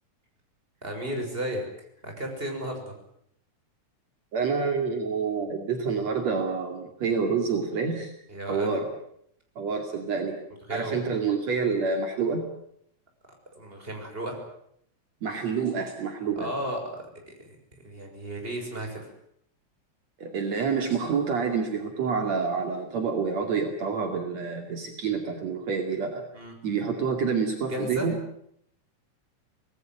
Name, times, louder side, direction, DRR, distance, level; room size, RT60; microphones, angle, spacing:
voice 1, 0.8-1.6 2.0-2.9 8.3-8.8 10.7-11.1 13.5-14.4 16.4-17.5 17.8-19.1 26.3-26.5 27.7-28.1, right 1 dB, 15° right, 2 dB, 6.6 m, -34 dB
voice 2, 4.3-8.1 8.5-8.9 9.6-10.4 10.7-12.5 15.2-16.5 20.2-26.2 26.6-28.2, right 5 dB, 65° right, 4 dB, 3.7 m, -28 dB
26.0 x 19.0 x 9.2 m, 0.71 s
omnidirectional pair, 3.3 m